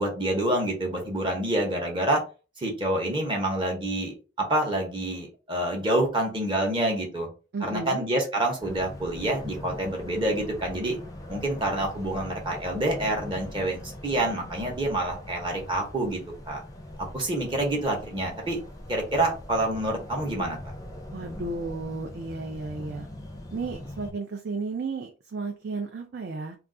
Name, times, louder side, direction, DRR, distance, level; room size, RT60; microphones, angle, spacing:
voice 1, 0.0-2.2 2.6-7.3 7.6-11.0 11.3-16.2 16.5-16.6 17.1-18.6 18.9-20.6, right 1 dB, 25° right, 0 dB, 0.7 m, -27 dB
voice 2, 7.5-8.0 21.1-23.1 23.5-26.6, right 3 dB, 60° right, 2 dB, 0.4 m, -33 dB
sound 1, 8.6-24.1, left 1 dB, 20° left, 0.4 m, -41 dB
2.3 x 2.3 x 3.6 m, 0.33 s
head